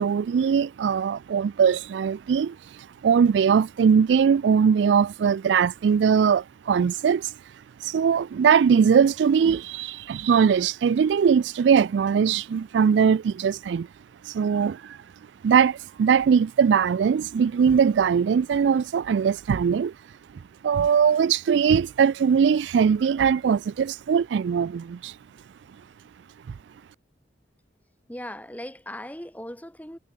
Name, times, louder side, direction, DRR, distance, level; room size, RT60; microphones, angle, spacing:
voice 1, 0.0-7.3 7.8-13.9 14.2-15.0 15.4-19.9 20.6-25.1, right 7 dB, 85° right, 0.3 m, -21 dB
voice 2, 28.1-30.0, left 1 dB, 10° left, 4.7 m, -38 dB
head